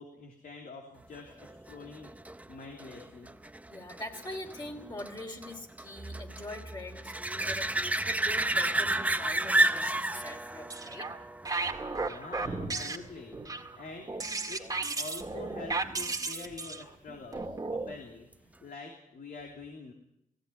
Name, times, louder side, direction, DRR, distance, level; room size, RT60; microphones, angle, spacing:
voice 1, 0.0-2.1 2.5-3.3 12.0-14.1 14.5-19.9, left 4 dB, 90° left, 1 dB, 3.1 m, -46 dB
sound 1, 1.4-12.7 18.3-18.4, right 2 dB, 10° right, 0.7 m, -32 dB
voice 2, 3.7-11.1, left 1 dB, 30° left, 1 dB, 2.9 m, -43 dB
sound 2, 10.5-11.2 11.5-18.0, right 3 dB, 25° right, 2.0 m, -35 dB
18.0 x 16.5 x 9.4 m, 0.79 s
wide cardioid pair, 130°, 14 cm